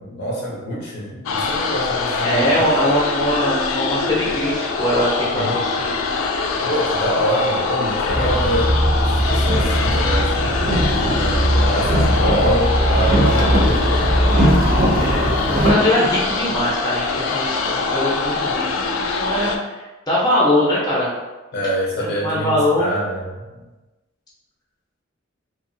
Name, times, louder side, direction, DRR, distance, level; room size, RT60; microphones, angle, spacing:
voice 1, 0.0-2.7 5.3-5.6 6.6-8.8 9.1-10.7 11.0-14.1 21.5-23.4, equal, 55° left, -4 dB, 0.7 m, -25 dB
sound 1, 1.3-19.6, left 4 dB, 90° left, 0.3 m, -23 dB
voice 2, 2.2-6.0 15.3-21.1 22.0-22.9, left 1 dB, 20° left, -6 dB, 0.6 m, -21 dB
Boat Water vehicle, 8.1-15.7, equal, 45° right, 0.4 m, -18 dB
2.9 x 2.4 x 2.6 m, 1.2 s
head